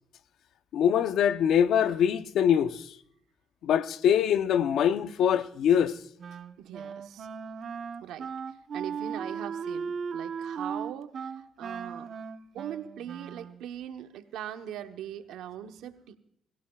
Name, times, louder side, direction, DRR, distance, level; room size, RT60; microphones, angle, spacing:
voice 1, 0.7-2.9 3.6-6.0, left 9 dB, 75° left, 0.7 m, -24 dB
Wind instrument woodwind instrument, 6.2-13.7, right 6 dB, 55° right, 1.0 m, -37 dB
voice 2, 6.6-7.3 8.0-12.1 12.5-16.2, right 10 dB, 90° right, 1.0 m, -41 dB
23.0 x 16.0 x 2.4 m
cardioid pair, 90°, 0 cm